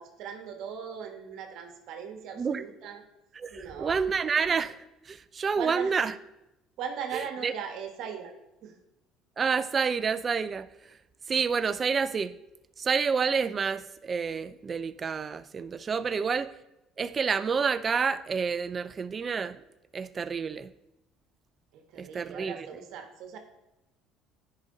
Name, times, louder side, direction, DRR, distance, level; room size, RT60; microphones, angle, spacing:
voice 1, 0.0-3.0 3.5-4.0 5.5-5.9 6.8-8.3 8.6-8.8 16.1-16.2 21.7-23.4, right 7 dB, 70° right, 5 dB, 1.3 m, -39 dB
voice 2, 3.4-4.8 5.1-6.1 7.4-7.5 9.4-10.7 11.3-12.4 12.8-16.5 17.0-19.6 19.9-20.7 22.0-22.7, right 5 dB, 35° right, 14 dB, 0.5 m, -28 dB
10.5 x 5.1 x 3.9 m, 0.93 s
supercardioid pair, 90°, 0 cm